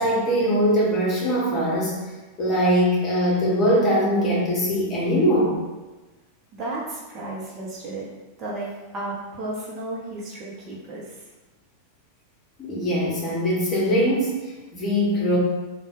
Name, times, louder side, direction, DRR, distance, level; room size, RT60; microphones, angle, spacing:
voice 1, 0.0-2.0 2.4-5.6 12.6-15.4, equal, 25° left, -5 dB, 1.2 m, -22 dB
voice 2, 6.5-8.1 8.4-11.2, right 2 dB, 30° right, -5 dB, 1.0 m, -33 dB
3.7 x 2.4 x 3.8 m, 1.2 s
figure-of-eight pair, 90°, 0 cm